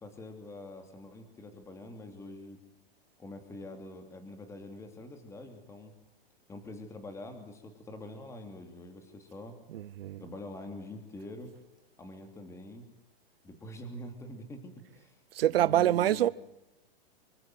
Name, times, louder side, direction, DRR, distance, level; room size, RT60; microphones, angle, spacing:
voice 1, 0.0-2.6 3.2-5.9 6.5-9.6 10.2-11.5 12.0-12.8 13.4-15.1 15.5-16.3, left 1 dB, 10° left, 2.7 m, -45 dB
voice 2, 9.7-10.2 15.3-16.3, right 12 dB, 65° right, 0.8 m, -26 dB
25.0 x 23.0 x 7.8 m
hypercardioid pair, 160°, 31 cm